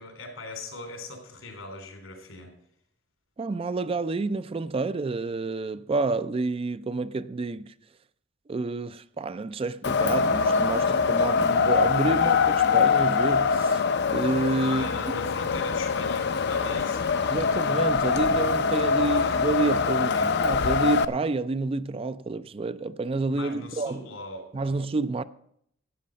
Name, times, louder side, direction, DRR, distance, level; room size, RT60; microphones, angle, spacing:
voice 1, 0.0-2.5 14.6-17.1 18.9-19.4 20.1-20.3 23.3-24.8, left 3 dB, 90° left, 3.5 m, -39 dB
voice 2, 3.4-7.7 8.5-13.8 14.1-14.8 17.3-24.1 24.5-25.2, right 3 dB, 30° right, 0.4 m, -29 dB
Wind, 9.8-21.0, left 5 dB, 60° left, 0.5 m, -23 dB
13.0 x 8.5 x 5.1 m
head